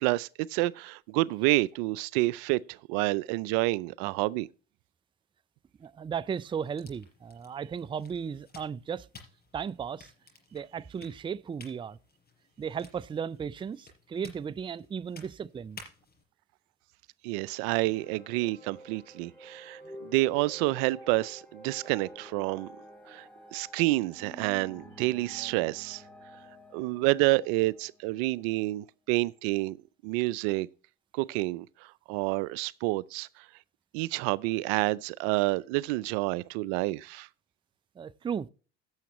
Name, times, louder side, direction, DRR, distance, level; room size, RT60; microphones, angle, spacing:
voice 1, 0.0-4.5 17.2-22.7 23.1-26.0 26.7-29.8 30.0-30.7 31.1-33.5 33.9-37.3, right 20 dB, 80° right, 0.5 m, -29 dB
voice 2, 5.8-9.1 9.5-10.1 10.5-12.0 12.6-15.8 38.0-38.5, right 7 dB, 15° right, 0.4 m, -35 dB
sound 1, 6.6-16.2, left 4 dB, 30° left, 5.2 m, -54 dB
sound 2, 17.6-28.8, equal, 5° left, 3.1 m, -50 dB
16.5 x 7.1 x 3.0 m
supercardioid pair, 85°, 30 cm